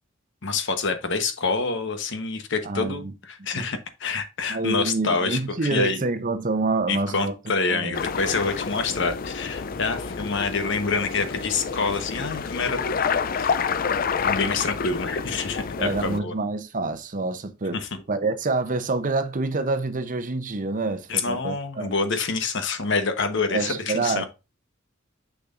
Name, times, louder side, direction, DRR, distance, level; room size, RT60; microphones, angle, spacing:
voice 1, 0.4-6.0 6.9-12.8 13.3-13.5 14.2-16.3 17.7-18.0 21.1-24.2, left 4 dB, 60° left, 1.1 m, -27 dB
voice 2, 2.6-3.1 3.5-3.6 4.5-7.3 7.7-7.9 15.8-17.8 18.1-21.9 23.5-24.2, right 3 dB, 40° right, 0.8 m, -27 dB
sound 1, 7.9-16.2, left 6 dB, 45° left, 0.4 m, -28 dB
6.7 x 6.2 x 2.5 m
head